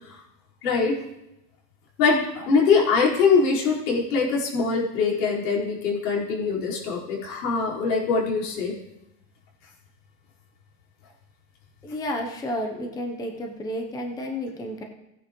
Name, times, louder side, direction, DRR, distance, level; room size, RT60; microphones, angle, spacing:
voice 1, 0.6-0.9 2.0-8.7, left 5 dB, 75° left, -5 dB, 4.7 m, -23 dB
voice 2, 11.8-14.8, left 1 dB, 10° left, 3 dB, 0.7 m, -31 dB
16.0 x 9.7 x 3.1 m, 0.88 s
supercardioid pair, 145°, 48 cm